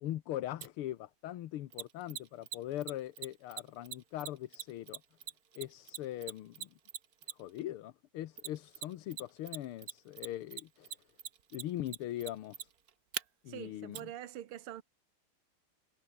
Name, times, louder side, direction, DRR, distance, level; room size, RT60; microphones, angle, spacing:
voice 1, 0.0-5.0 5.6-6.7 7.4-11.0 11.5-12.7 13.4-14.1, left 13 dB, 80° left, 1.8 m, -41 dB
Mechanisms, 0.6-0.7 1.7-7.6 8.4-9.2 9.5-13.2 13.9-14.0, right 9 dB, 50° right, 1.4 m, -41 dB
voice 2, 13.5-14.8, right 11 dB, 80° right, 2.1 m, -45 dB
omnidirectional pair, 2.4 m